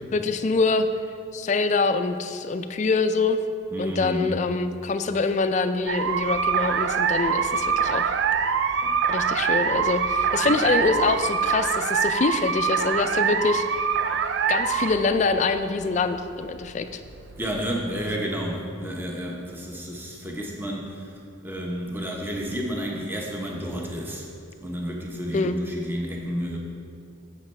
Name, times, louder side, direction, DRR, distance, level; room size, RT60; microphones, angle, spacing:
voice 1, 0.1-0.9 1.3-3.4 3.8-8.2 9.1-13.9 14.5-17.0 25.3-25.6, left 4 dB, 35° left, 9 dB, 0.3 m, -25 dB
voice 2, 3.7-4.3 8.8-9.0 10.4-10.6 17.4-21.2 21.4-24.3 24.6-26.6, equal, 10° right, -1 dB, 0.8 m, -31 dB
sound 1, 5.9-18.1, right 6 dB, 60° right, 0.3 m, -24 dB
9.7 x 7.5 x 3.2 m, 2.4 s
head